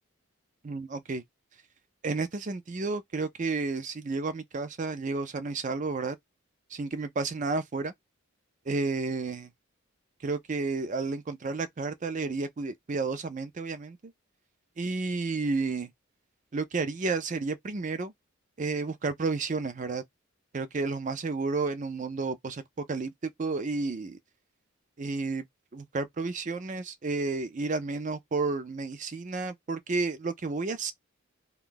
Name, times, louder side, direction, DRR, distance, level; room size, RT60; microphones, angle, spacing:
voice 1, 0.6-1.2 2.0-6.2 6.7-7.9 8.7-9.5 10.2-14.1 14.8-15.9 16.5-18.1 18.6-20.0 20.5-24.2 25.0-25.5 25.7-30.9, right 3 dB, 35° right, 0.4 m, -31 dB
2.7 x 2.3 x 3.7 m
head